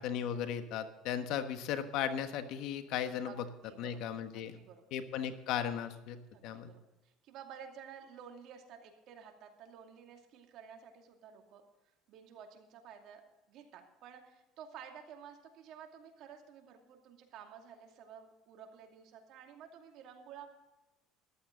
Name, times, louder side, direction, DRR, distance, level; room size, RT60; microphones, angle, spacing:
voice 1, 0.0-3.4 3.8-4.6 4.9-6.7, left 9 dB, 70° left, 9 dB, 1.3 m, -36 dB
voice 2, 3.2-4.0 4.3-4.8 6.3-11.6 12.1-13.2 13.5-20.5, right 8 dB, 60° right, 3 dB, 2.5 m, -52 dB
14.0 x 12.0 x 3.9 m, 1.0 s
cardioid pair, 115°, 0 cm